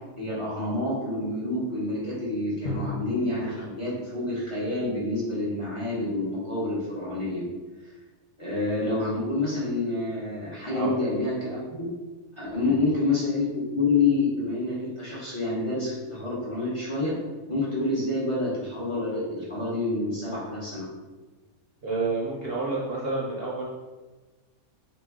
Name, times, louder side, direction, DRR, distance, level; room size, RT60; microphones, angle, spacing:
voice 1, 0.2-7.4 8.4-11.9 12.4-17.1 17.5-20.9, left 2 dB, 25° left, -8 dB, 1.1 m, -28 dB
Drum, 2.6-5.3, left 2 dB, 85° left, 1.4 m, -38 dB
voice 2, 21.8-23.6, right 3 dB, 50° right, -6 dB, 1.0 m, -29 dB
4.0 x 3.1 x 3.6 m, 1.2 s
omnidirectional pair, 1.5 m